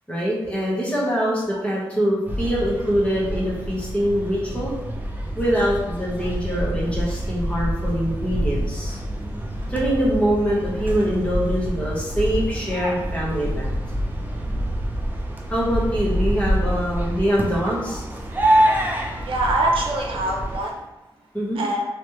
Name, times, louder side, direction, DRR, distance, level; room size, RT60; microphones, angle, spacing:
voice 1, 0.1-4.7 5.4-9.0 9.7-13.8 15.5-18.0 21.3-21.6, equal, 15° left, -6 dB, 1.2 m, -24 dB
sound 1, 2.3-20.6, equal, 20° right, 0.6 m, -26 dB
voice 2, 19.2-20.8 21.6-21.9, right 2 dB, 90° right, 0 dB, 0.6 m, -24 dB
3.2 x 3.0 x 3.1 m, 0.97 s
wide cardioid pair, 100°, 9 cm